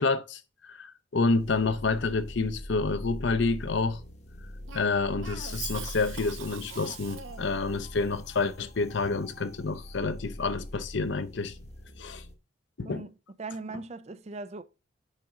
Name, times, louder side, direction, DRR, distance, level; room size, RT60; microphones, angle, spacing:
voice 1, 0.0-4.0 4.7-11.5 12.0-12.2 12.8-13.0, left 3 dB, 60° left, 0.6 m, -28 dB
sound 1, 1.4-12.3, left 1 dB, 30° left, 0.9 m, -43 dB
Cough, 4.7-7.6, right 7 dB, 70° right, 0.8 m, -42 dB
sound 2, 5.6-8.0 8.7-8.8, left 5 dB, 5° left, 1.1 m, -51 dB
voice 2, 13.4-14.6, right 3 dB, 30° right, 0.4 m, -39 dB
7.3 x 5.2 x 3.6 m
head